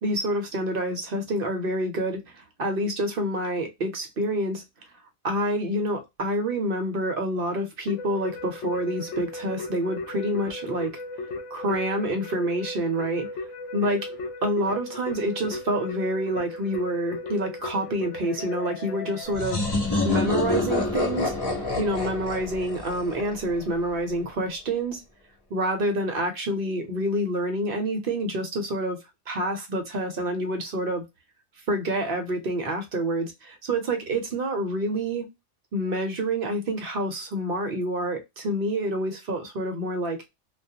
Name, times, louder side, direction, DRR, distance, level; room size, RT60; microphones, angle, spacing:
voice 1, 0.0-4.6 5.2-11.0 11.5-13.5 13.7-14.1 14.4-21.3 21.8-25.0 25.5-29.0 29.3-31.0 31.7-35.3 35.7-40.2, right 1 dB, 55° right, 0.8 m, -27 dB
Keyboard (musical), 7.9-20.3, left 2 dB, 75° left, 0.9 m, -36 dB
sound 1, 19.3-23.9, left 2 dB, 25° left, 0.7 m, -27 dB
2.4 x 2.3 x 2.7 m
omnidirectional pair, 1.3 m